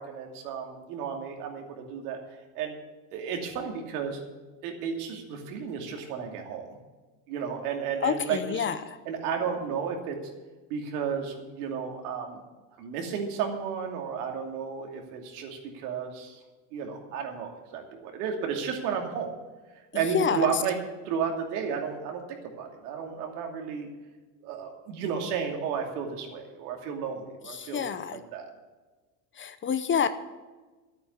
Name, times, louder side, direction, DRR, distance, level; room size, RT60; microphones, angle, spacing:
voice 1, 0.0-2.2 2.5-2.7 3.1-4.2 4.6-6.6 7.3-8.7 9.1-10.2 10.7-12.4 12.8-16.4 16.7-19.3 19.9-20.8 21.0-23.9 24.4-27.9 28.3-28.5, right 6 dB, 80° right, 2 dB, 2.7 m, -33 dB
voice 2, 8.0-9.0 19.9-20.5 27.4-28.2 29.4-30.1, left 7 dB, 25° left, 12 dB, 0.7 m, -28 dB
11.0 x 8.8 x 8.1 m, 1.3 s
supercardioid pair, 115°, 45 cm